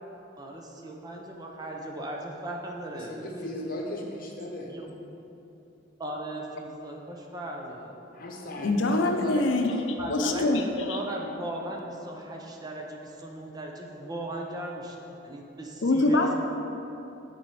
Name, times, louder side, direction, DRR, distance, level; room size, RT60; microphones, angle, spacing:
voice 1, 0.4-3.5 4.7-4.8 6.0-7.9 9.2-9.4 10.0-15.0 15.2-16.3, right 1 dB, 20° right, 0 dB, 0.7 m, -37 dB
voice 2, 3.0-4.8 8.1-9.6, left 1 dB, 50° left, 0 dB, 1.0 m, -37 dB
voice 3, 8.6-11.0 15.8-16.3, left 2 dB, 85° left, 4 dB, 0.6 m, -24 dB
9.2 x 4.2 x 4.9 m, 2.9 s
head